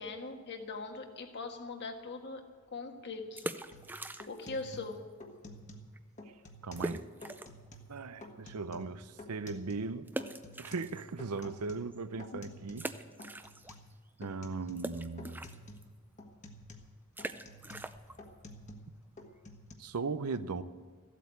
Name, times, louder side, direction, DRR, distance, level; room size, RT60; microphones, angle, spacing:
voice 1, 0.0-2.4 2.7-3.5 4.3-5.0 12.3-12.4, left 3 dB, 55° left, 1.6 m, -41 dB
sound 1, 3.2-4.6 4.9-5.0 5.6-5.7 5.9-6.0 6.8-7.7 8.2-8.3 10.1-11.4 11.9-12.0 12.7-13.9 14.2-19.7, right 1 dB, 10° right, 0.5 m, -43 dB
sound 2, 3.7-3.9 4.2-5.9 6.2-6.9 7.2-7.9 8.2-9.9 10.2-12.9 13.2-13.9 14.2-14.9 15.2-15.9 16.2-18.9 19.2-19.7, left 1 dB, 35° left, 1.5 m, -50 dB
voice 2, 6.6-7.1 7.9-10.1 10.6-12.9 14.2-15.4 19.8-20.6, right 4 dB, 90° right, 0.7 m, -38 dB
14.5 x 8.3 x 8.4 m
head